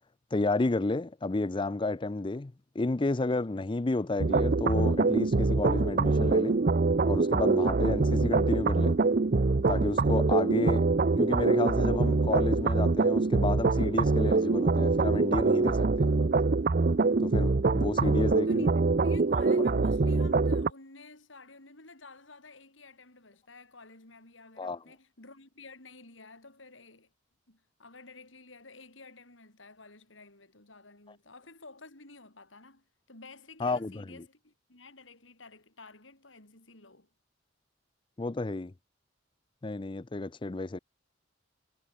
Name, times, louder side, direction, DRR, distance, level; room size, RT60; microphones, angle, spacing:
voice 1, 0.3-6.6 7.0-9.0 9.7-10.9 11.2-16.1 17.2-18.7 24.6-24.8 33.6-34.0 38.2-38.7 39.6-40.8, left 2 dB, 25° left, 0.5 m, -31 dB
sound 1, 4.2-20.7, right 3 dB, 45° right, 0.6 m, -24 dB
voice 2, 18.0-27.1 27.5-37.1, left 3 dB, 80° left, 4.9 m, -52 dB
head